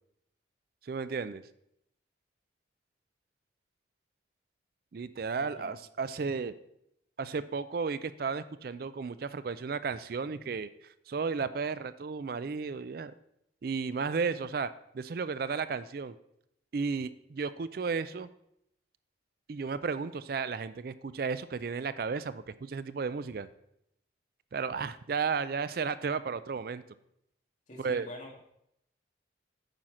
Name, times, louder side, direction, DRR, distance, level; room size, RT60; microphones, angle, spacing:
voice 1, 0.8-1.4 4.9-6.5 7.2-10.7 11.1-13.1 13.6-14.7 14.9-16.1 16.7-18.3 19.5-23.5 24.5-26.8 27.8-28.1, right 5 dB, 50° right, 14 dB, 0.4 m, -33 dB
voice 2, 5.4-5.7 27.7-28.4, left 1 dB, 40° left, 1 dB, 1.8 m, -46 dB
8.9 x 5.7 x 6.2 m, 0.76 s
head